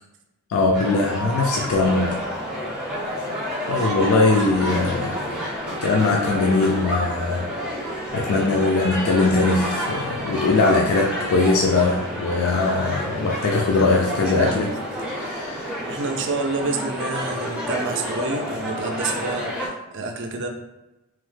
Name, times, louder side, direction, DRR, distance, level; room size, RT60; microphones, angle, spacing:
voice 1, 0.5-2.2 3.7-5.3 5.8-7.5 7.7-14.7 15.1-15.7, left 3 dB, 70° left, -1 dB, 0.3 m, -21 dB
sound 1, 0.7-19.7, equal, 5° right, 0.5 m, -29 dB
voice 2, 14.2-14.7 15.9-20.5, right 3 dB, 60° right, 4 dB, 0.4 m, -28 dB
3.0 x 2.0 x 3.1 m, 1.0 s
head